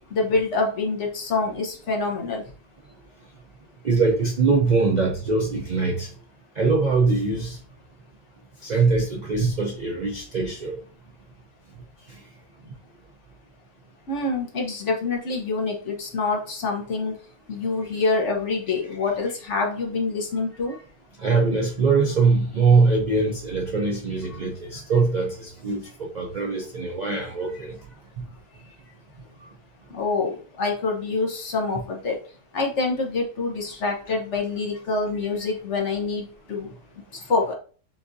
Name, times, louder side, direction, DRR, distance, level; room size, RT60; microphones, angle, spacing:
voice 1, 0.1-2.4 14.1-17.2 17.5-20.7 29.9-32.2 32.5-36.7 37.1-37.5, left 3 dB, 55° left, 1 dB, 1.1 m, -26 dB
voice 2, 3.8-6.1 6.6-7.6 8.6-10.7 20.7-20.8 21.2-27.7, right 4 dB, 55° right, 1 dB, 0.5 m, -22 dB
6.9 x 2.6 x 2.6 m, 0.40 s
omnidirectional pair, 1.6 m